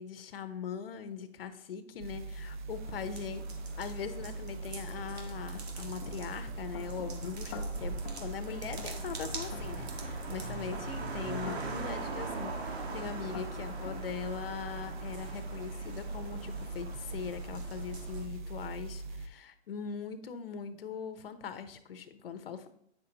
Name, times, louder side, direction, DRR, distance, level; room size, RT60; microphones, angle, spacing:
voice 1, 0.0-3.4 3.8-22.7, left 7 dB, 60° left, 10 dB, 0.8 m, -41 dB
sound 1, 2.0-19.3, right 3 dB, 45° right, 0.7 m, -41 dB
sound 2, 2.7-18.2, right 3 dB, 70° right, 1.8 m, -42 dB
sound 3, 4.2-4.3 4.9-14.0, left 7 dB, 15° left, 0.4 m, -50 dB
8.9 x 6.7 x 2.9 m, 0.67 s
hypercardioid pair, 155°, 34 cm